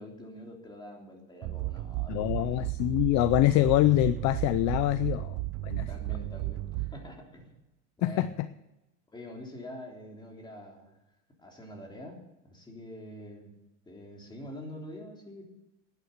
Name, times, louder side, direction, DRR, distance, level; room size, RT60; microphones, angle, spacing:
voice 1, 0.0-2.6 5.9-7.5 8.0-8.3 9.1-11.0 11.4-13.5 13.8-15.4, left 1 dB, 10° left, 0 dB, 3.3 m, -45 dB
sound 1, 1.4-7.2, right 18 dB, 45° right, 0.6 m, -34 dB
voice 2, 2.1-5.4 5.6-5.9 8.0-8.3, left 16 dB, 45° left, 14 dB, 0.6 m, -25 dB
11.5 x 9.7 x 8.2 m, 0.95 s
supercardioid pair, 140°, 38 cm